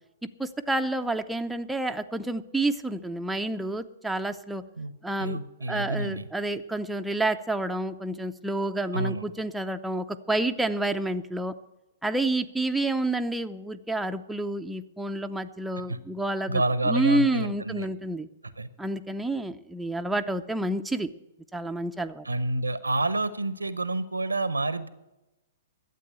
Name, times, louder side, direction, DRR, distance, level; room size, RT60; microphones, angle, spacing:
voice 1, 0.4-4.6 5.0-5.4 5.7-11.5 12.0-18.3 18.8-21.1 21.5-22.3, right 2 dB, 5° right, 6 dB, 0.6 m, -29 dB
voice 2, 5.2-6.3 8.9-9.2 15.9-16.0 16.5-17.9 18.6-18.7 22.2-24.9, right 2 dB, 90° right, 15 dB, 0.9 m, -28 dB
12.0 x 8.3 x 8.2 m, 0.98 s
figure-of-eight pair, 115°, 0 cm